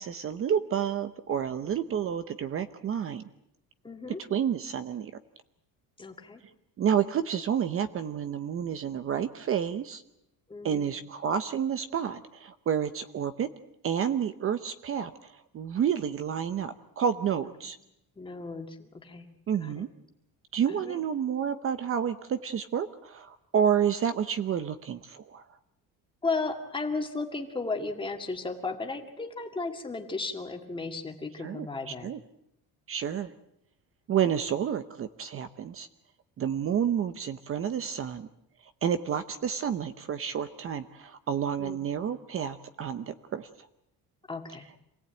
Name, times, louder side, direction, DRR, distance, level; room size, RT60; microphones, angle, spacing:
voice 1, 0.0-3.2 4.3-5.1 6.8-10.0 10.6-13.5 13.8-17.8 19.5-19.9 20.5-25.4 31.4-31.7 32.0-32.2 32.9-33.3 34.1-35.9 36.4-38.3 38.8-43.5, right 8 dB, 40° right, 11 dB, 0.9 m, -30 dB
voice 2, 3.8-4.2 6.0-6.4 10.5-10.9 17.6-17.7 18.2-19.3 19.6-19.8 20.7-21.0 26.2-32.1 41.6-41.8 44.3-44.6, left 3 dB, 15° left, 3 dB, 2.1 m, -35 dB
27.5 x 18.0 x 8.9 m, 0.81 s
cardioid pair, 170°, 35 cm